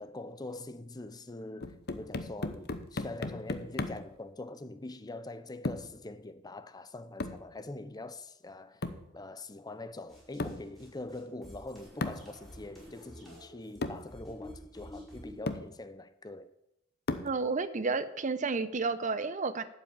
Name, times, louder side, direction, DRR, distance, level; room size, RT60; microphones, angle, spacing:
voice 1, 0.0-8.8 9.1-16.5, left 2 dB, 20° left, 0.6 m, -43 dB
sound 1, 1.6-4.1 5.6-6.0 7.2-7.5 8.8-9.1 10.4-10.7 12.0-12.3 13.3-13.4 13.8-14.1 14.9-15.0 15.5-15.7 17.1-17.4, left 2 dB, 55° left, 0.9 m, -36 dB
sound 2, 10.1-15.4, left 1 dB, ahead, 5.4 m, -50 dB
voice 2, 17.2-19.6, right 4 dB, 40° right, 0.7 m, -31 dB
12.0 x 5.7 x 8.7 m
head